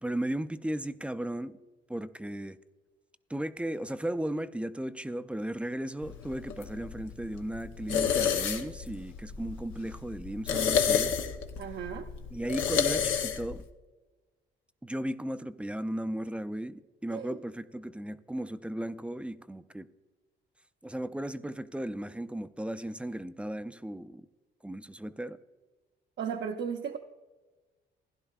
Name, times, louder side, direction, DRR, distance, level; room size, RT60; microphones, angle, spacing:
voice 1, 0.0-1.5 1.9-2.6 3.3-11.2 12.3-13.6 14.8-19.9 20.8-24.3 24.6-25.4, right 1 dB, 5° right, 12 dB, 0.4 m, -36 dB
sound 1, 6.0-13.6, left 7 dB, 90° left, 0.9 m, -31 dB
voice 2, 11.6-12.1 17.1-17.4 26.2-27.0, right 7 dB, 65° right, 4 dB, 0.7 m, -35 dB
15.5 x 11.0 x 2.4 m, 1.2 s
cardioid pair, 90°, 20 cm